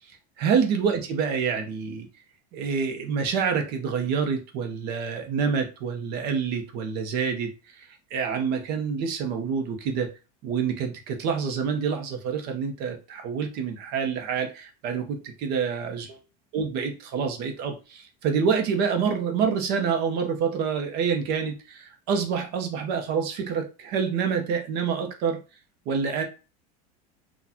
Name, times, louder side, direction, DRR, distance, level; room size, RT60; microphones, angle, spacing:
voice 1, 0.4-2.1 2.5-7.5 7.8-10.1 10.4-16.2 16.5-25.4 25.9-26.2, right 6 dB, 55° right, 0.9 m, -27 dB
3.9 x 2.4 x 2.8 m
supercardioid pair, 125°, 20 cm